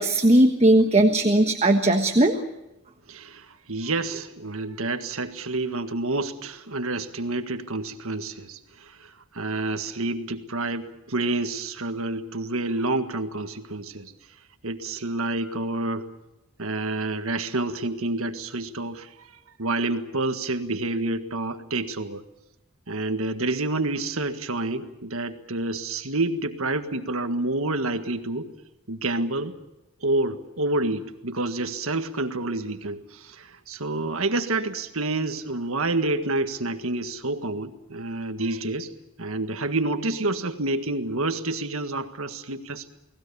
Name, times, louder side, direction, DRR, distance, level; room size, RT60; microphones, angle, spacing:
voice 1, 0.0-2.4, right 1 dB, 30° right, 5 dB, 1.3 m, -18 dB
voice 2, 3.1-14.1 14.6-16.1 16.6-19.3 19.6-22.2 22.9-28.5 28.9-29.5 30.0-38.9 39.2-42.9, right 2 dB, 70° right, 7 dB, 1.7 m, -28 dB
30.0 x 19.5 x 7.0 m, 0.94 s
head